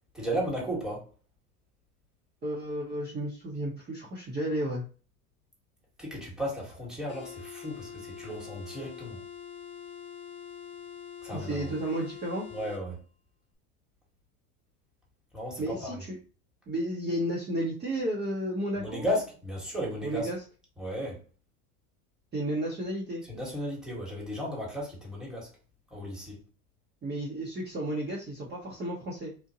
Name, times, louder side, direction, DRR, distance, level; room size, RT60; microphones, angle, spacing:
voice 1, 0.1-1.1 6.0-9.2 11.2-11.7 12.5-13.0 15.3-16.0 18.8-20.3 20.8-21.2 23.3-25.5 25.9-26.4, equal, ahead, 1.3 m, -34 dB
voice 2, 2.4-4.8 11.3-12.5 15.6-16.0 16.7-19.0 20.0-20.4 22.3-23.2 27.0-29.3, right 1 dB, 25° right, 0.9 m, -32 dB
sound 1, 7.1-12.8, left 8 dB, 25° left, 0.7 m, -44 dB
2.6 x 2.2 x 2.7 m
hypercardioid pair, 95°, 45 cm